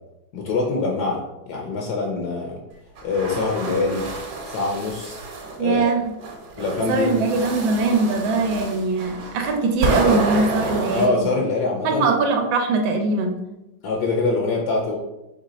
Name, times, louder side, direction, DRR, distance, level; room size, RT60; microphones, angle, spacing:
voice 1, 0.3-2.6 3.0-4.1 4.4-5.2 5.6-5.9 6.6-7.2 10.9-12.1 13.8-15.0, left 3 dB, 65° left, 0 dB, 1.1 m, -24 dB
sound 1, 3.0-5.6 6.2-11.1, right 3 dB, 70° right, 1.4 m, -28 dB
voice 2, 5.6-6.1 6.9-11.3 11.8-13.4, right 3 dB, 90° right, 4 dB, 1.4 m, -21 dB
3.9 x 3.1 x 4.1 m, 0.95 s
omnidirectional pair, 2.0 m